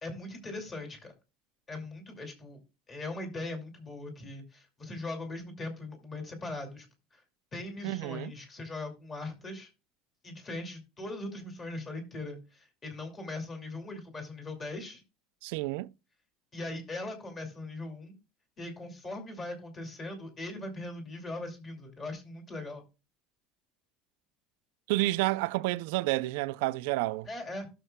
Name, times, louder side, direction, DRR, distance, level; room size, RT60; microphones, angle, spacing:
voice 1, 0.0-1.1 1.7-2.6 2.9-6.9 7.1-7.2 7.5-9.7 10.2-15.0 16.5-18.1 18.6-22.8 27.2-27.7, left 2 dB, 20° left, 2.4 m, -40 dB
voice 2, 7.8-8.3 15.4-15.9 24.9-27.3, right 19 dB, 80° right, 0.4 m, -30 dB
16.5 x 6.7 x 2.2 m
cardioid pair, 170°, 0 cm